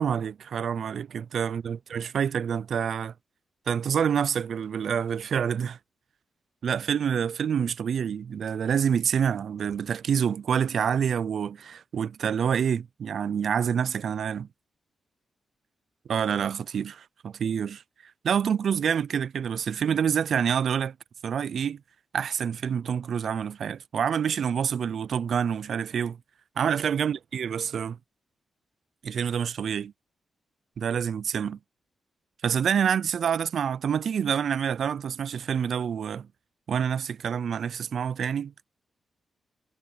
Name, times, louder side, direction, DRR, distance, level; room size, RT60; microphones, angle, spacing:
voice 1, 0.0-3.1 3.7-5.8 6.6-14.5 16.1-17.8 18.2-21.0 21.2-21.8 22.1-26.2 26.6-28.0 29.0-29.9 30.8-31.6 32.4-36.3 36.7-38.5, right 7 dB, 70° right, 0.5 m, -27 dB
supercardioid pair, 50°, 0 cm